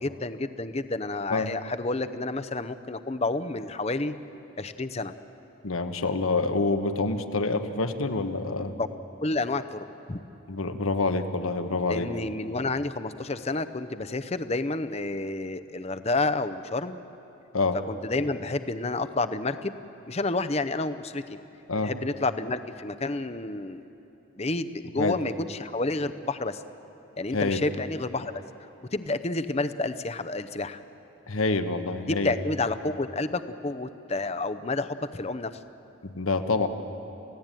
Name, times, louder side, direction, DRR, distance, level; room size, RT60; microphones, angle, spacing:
voice 1, 0.0-4.1 4.6-5.1 8.7-8.9 9.2-10.2 11.9-17.0 17.9-19.8 20.1-21.2 21.8-23.8 24.4-26.6 27.2-28.3 28.9-30.8 32.1-35.5, left 2 dB, 30° left, 11 dB, 0.7 m, -30 dB
voice 2, 5.6-8.7 10.5-12.1 17.5-17.8 21.7-21.9 25.0-25.2 27.3-27.6 31.3-32.3 36.1-36.7, left 3 dB, 90° left, 8 dB, 1.3 m, -27 dB
29.0 x 16.5 x 9.1 m, 2.9 s
head